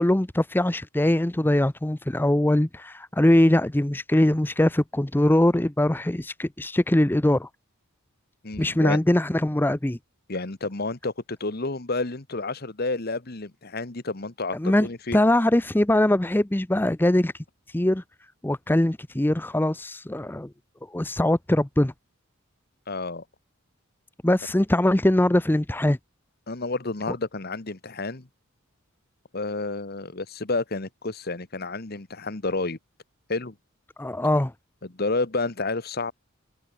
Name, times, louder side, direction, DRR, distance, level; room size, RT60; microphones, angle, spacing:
voice 1, 0.0-7.5 8.6-10.0 14.5-17.3 17.7-18.0 18.4-20.5 20.9-21.9 24.2-26.0 34.0-34.5, left 1 dB, 10° left, 0.5 m, -22 dB
voice 2, 8.4-9.0 10.3-15.2 22.9-23.2 26.5-28.3 29.3-32.8 33.3-33.5 34.8-36.1, left 3 dB, 45° left, 1.3 m, -30 dB
head